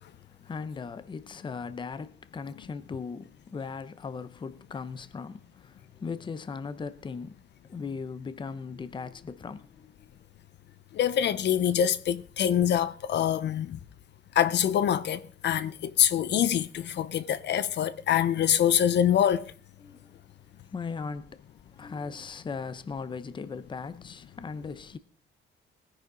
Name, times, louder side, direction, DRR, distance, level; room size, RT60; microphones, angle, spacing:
voice 1, 0.0-7.4 7.6-10.1 19.8-20.2 20.6-21.4 21.7-25.0, left 5 dB, 25° left, 0.7 m, -38 dB
voice 2, 10.9-13.8 14.3-19.5, left 9 dB, 60° left, 0.7 m, -25 dB
20.0 x 10.0 x 3.8 m
cardioid pair, 160°, 21 cm